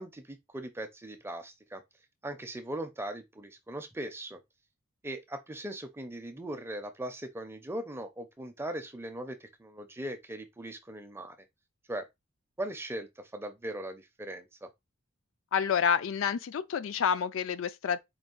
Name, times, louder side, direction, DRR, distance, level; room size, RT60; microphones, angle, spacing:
voice 1, 0.0-1.8 2.2-4.4 5.0-11.4 11.9-12.1 12.6-14.7, right 1 dB, 10° right, 0.5 m, -39 dB
voice 2, 15.5-18.0, left 7 dB, 65° left, 0.3 m, -28 dB
4.5 x 2.3 x 3.8 m
head